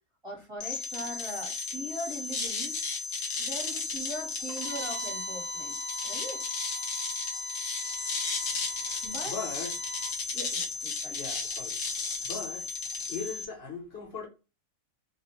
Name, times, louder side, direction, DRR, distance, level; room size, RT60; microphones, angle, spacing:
voice 1, 0.2-2.8 3.4-5.7 6.0-6.4 8.9-9.3 10.3-11.3, equal, 25° right, 1.0 m, -40 dB
sound 1, 0.6-13.5, left 4 dB, 75° left, 0.4 m, -34 dB
Bowed string instrument, 4.5-10.2, right 2 dB, 65° right, 0.9 m, -42 dB
voice 2, 9.2-9.8 11.1-11.8 12.2-12.7 13.1-14.3, left 4 dB, 55° left, 0.9 m, -39 dB
2.4 x 2.3 x 2.8 m
omnidirectional pair, 1.5 m